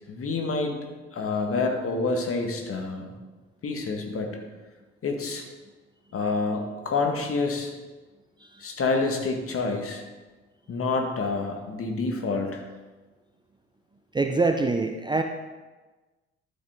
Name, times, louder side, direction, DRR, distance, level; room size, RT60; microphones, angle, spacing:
voice 1, 0.1-0.8 1.1-3.1 3.6-4.4 5.0-5.4 6.1-7.7 8.6-10.0 10.7-12.6, left 3 dB, 40° left, 3 dB, 1.8 m, -28 dB
voice 2, 14.1-15.2, right 3 dB, 15° right, 5 dB, 0.6 m, -24 dB
13.0 x 5.8 x 3.7 m, 1.2 s
figure-of-eight pair, 50°, 34 cm